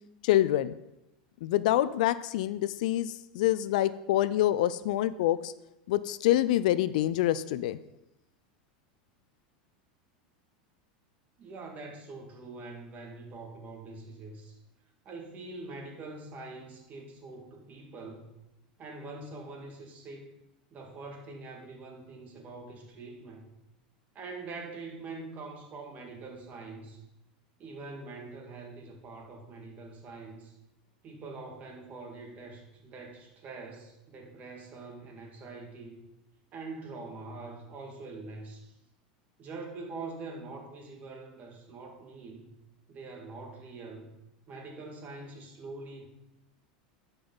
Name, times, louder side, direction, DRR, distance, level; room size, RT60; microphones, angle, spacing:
voice 1, 0.2-0.7 1.4-5.5 5.9-7.8, left 13 dB, 75° left, 16 dB, 0.4 m, -26 dB
voice 2, 11.4-14.6 15.0-18.3 18.8-20.3 20.7-23.4 24.1-27.0 27.6-30.5 31.0-36.0 36.5-38.7 39.4-42.5 42.9-44.1 44.5-46.1, right 3 dB, 35° right, 1 dB, 2.1 m, -44 dB
12.0 x 5.3 x 3.9 m, 0.88 s
hypercardioid pair, 110°, 4 cm